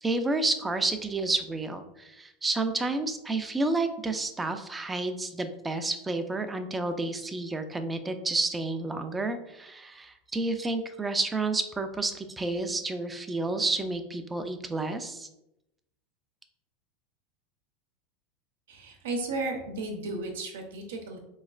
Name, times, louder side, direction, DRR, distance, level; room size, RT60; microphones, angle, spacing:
voice 1, 0.0-15.3, right 2 dB, 15° right, 8 dB, 0.4 m, -30 dB
voice 2, 18.7-21.2, right 2 dB, 85° right, 3 dB, 0.8 m, -34 dB
4.2 x 3.1 x 2.4 m, 0.86 s
hypercardioid pair, 110°, 0 cm